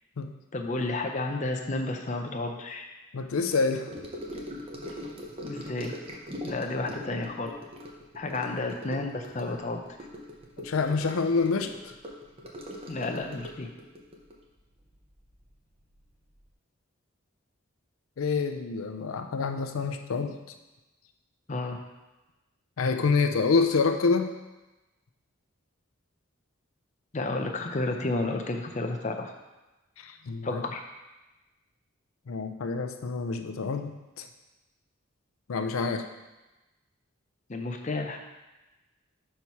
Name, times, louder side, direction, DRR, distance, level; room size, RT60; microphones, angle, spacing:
voice 1, 0.5-2.9 5.4-5.9 6.4-7.5 8.1-9.8 12.9-13.7 21.5-21.8 27.1-29.3 30.4-30.8 37.5-38.2, left 2 dB, 35° left, 4 dB, 0.5 m, -31 dB
voice 2, 3.1-3.9 10.6-11.9 18.2-20.4 22.8-24.3 30.0-30.6 32.3-34.3 35.5-36.0, left 4 dB, 90° left, 7 dB, 0.5 m, -27 dB
Gurgling / Sink (filling or washing) / Trickle dribble, 3.9-15.5 15.8-16.1 16.4-16.5, equal, 30° right, 0.7 m, -41 dB
5.7 x 4.2 x 4.6 m, 1.1 s
head